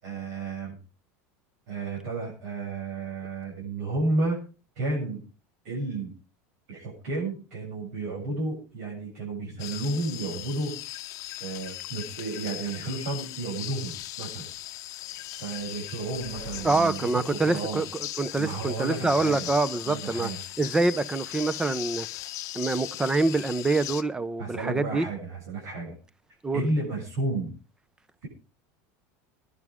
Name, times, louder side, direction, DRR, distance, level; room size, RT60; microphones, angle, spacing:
voice 1, 0.0-0.8 1.7-4.4 4.8-5.2 5.6-6.1 6.7-10.8 11.4-14.4 15.4-17.1 17.4-17.8 18.4-19.5 19.8-20.4 24.4-25.9 26.5-27.5 28.2-28.3, right 2 dB, 70° right, 7.8 m, -32 dB
sound 1, 9.6-24.0, left 15 dB, 45° left, 0.8 m, -38 dB
sound 2, 13.9-18.8, equal, 35° right, 5.2 m, -50 dB
voice 2, 16.6-20.3 20.6-22.1 22.5-25.1 26.4-26.7, right 3 dB, 10° right, 0.7 m, -26 dB
21.5 x 11.0 x 3.6 m
supercardioid pair, 145°, 8 cm